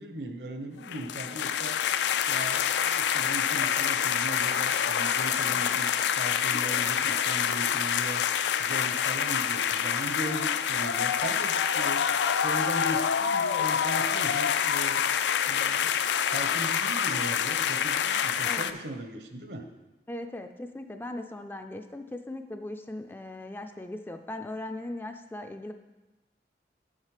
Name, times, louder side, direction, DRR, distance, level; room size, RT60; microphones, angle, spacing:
voice 1, 0.0-1.8 2.3-8.2 8.6-12.0 12.4-15.0 15.5-15.9 16.3-19.7, right 1 dB, 75° right, 6 dB, 1.0 m, -38 dB
sound 1, 0.8-18.7, left 8 dB, 85° left, 0.4 m, -27 dB
voice 2, 20.1-25.7, left 1 dB, 10° left, 6 dB, 0.3 m, -38 dB
7.4 x 7.3 x 4.9 m, 1.1 s
head